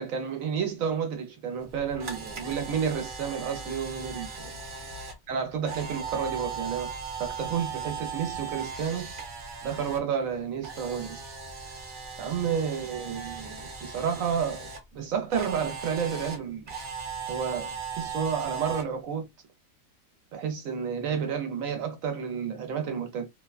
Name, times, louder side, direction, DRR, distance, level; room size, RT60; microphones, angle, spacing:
voice 1, 0.0-4.6 5.3-6.9 7.2-9.1 9.6-11.2 12.2-16.6 17.3-19.3 20.3-23.3, right 7 dB, 75° right, 1.2 m, -31 dB
Camera, 1.6-10.0 10.3-14.8 15.3-18.8, right 5 dB, 45° right, 0.8 m, -38 dB
2.9 x 2.2 x 2.3 m
omnidirectional pair, 1.4 m